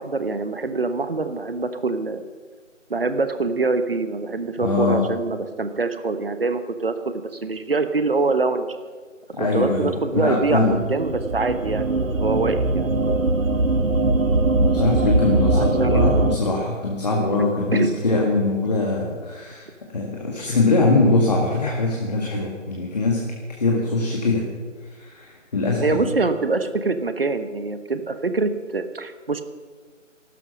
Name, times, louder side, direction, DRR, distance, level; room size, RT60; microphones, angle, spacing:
voice 1, 0.0-2.2 2.9-8.8 9.4-13.2 15.5-16.4 17.3-17.4 17.7-17.9 25.8-29.4, right 3 dB, 45° right, 10 dB, 1.1 m, -25 dB
voice 2, 4.6-5.1 9.4-10.8 14.6-19.7 19.9-23.2 23.6-24.4 24.9-26.1, left 3 dB, 30° left, -1 dB, 1.9 m, -22 dB
sound 1, 10.4-16.4, right 2 dB, 90° right, 1.2 m, -21 dB
15.0 x 12.5 x 6.2 m, 1.5 s
figure-of-eight pair, 160°, 39 cm